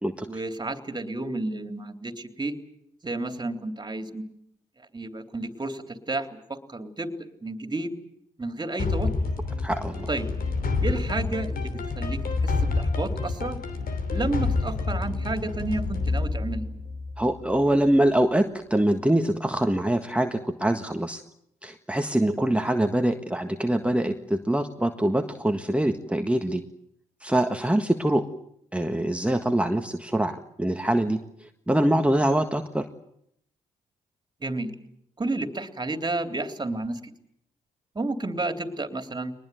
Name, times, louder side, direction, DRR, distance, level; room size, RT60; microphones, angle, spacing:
voice 1, 0.3-2.6 3.0-4.2 4.9-7.1 7.4-7.9 8.4-9.1 10.1-10.3 10.8-13.6 14.1-16.7 34.4-34.7 35.2-37.1 37.9-39.3, right 2 dB, 25° right, 7 dB, 3.4 m, -31 dB
sound 1, 8.8-17.6, left 3 dB, 60° left, 3.1 m, -28 dB
voice 2, 9.6-10.1 17.2-21.2 21.6-26.6 27.2-28.2 28.7-32.8, right 1 dB, 5° right, 5 dB, 1.6 m, -24 dB
22.5 x 20.0 x 9.4 m, 0.72 s
supercardioid pair, 55°, 17 cm